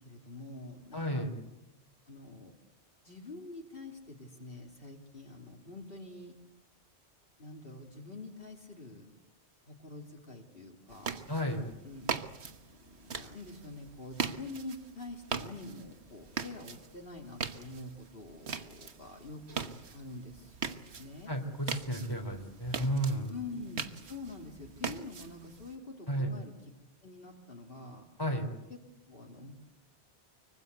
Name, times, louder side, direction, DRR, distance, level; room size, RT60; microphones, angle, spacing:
voice 1, 0.0-1.3 2.1-2.5 3.0-6.3 7.4-9.1 9.7-11.2 11.8-12.1 12.4-21.3 23.3-26.5 27.0-28.1 29.1-29.5, left 2 dB, 55° left, 0 dB, 3.3 m, -46 dB
voice 2, 0.9-1.3 11.3-11.7 21.3-23.3 26.1-26.3 28.2-28.5, equal, 20° left, 3 dB, 3.7 m, -32 dB
sound 1, 10.9-25.8, right 5 dB, 75° right, 1.5 m, -41 dB
25.0 x 24.0 x 8.2 m, 0.92 s
omnidirectional pair, 1.1 m